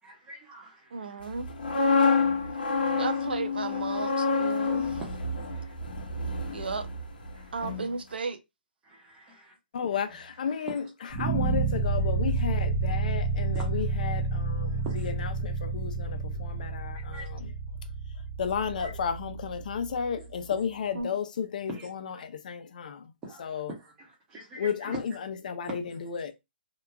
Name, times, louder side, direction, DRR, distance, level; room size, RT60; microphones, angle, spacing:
voice 1, 0.0-1.2 2.2-3.0 5.4-5.7 7.3-7.6 8.8-9.5 10.6-10.7 14.8-14.9 17.1-17.3 18.8-18.9 21.7-21.9 22.1-22.2 23.2-25.0, right 2 dB, 15° right, 0.9 m, -44 dB
voice 2, 0.9-1.5 3.0-5.0 6.5-6.9 7.5-8.4 20.9-21.1, right 4 dB, 90° right, 0.5 m, -34 dB
sound 1, 1.4-7.3 7.6-7.9, left 4 dB, 70° left, 0.8 m, -28 dB
voice 3, 9.7-17.5 18.4-23.1 23.4-23.7 24.6-26.3, left 7 dB, 55° left, 0.4 m, -33 dB
sound 2, 11.1-20.2, right 3 dB, 45° right, 0.8 m, -30 dB
2.8 x 2.2 x 2.3 m
hypercardioid pair, 160°, 5 cm